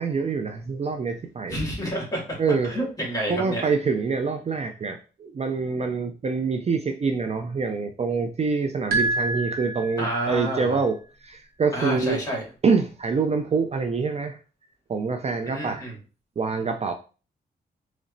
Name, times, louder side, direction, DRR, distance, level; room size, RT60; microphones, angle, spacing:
voice 1, 0.0-1.6 2.4-2.7 3.3-12.2 12.6-14.4 14.9-15.9 16.4-16.9, right 4 dB, 35° right, 5 dB, 0.4 m, -26 dB
voice 2, 1.5-2.4 2.6-3.7 10.0-10.8 11.7-12.4 15.4-16.0, right 1 dB, 20° left, -1 dB, 2.1 m, -29 dB
sound 1, 8.9-10.5, right 2 dB, 55° right, 1.1 m, -27 dB
4.0 x 3.1 x 2.5 m, 0.35 s
cardioid pair, 85°, 18 cm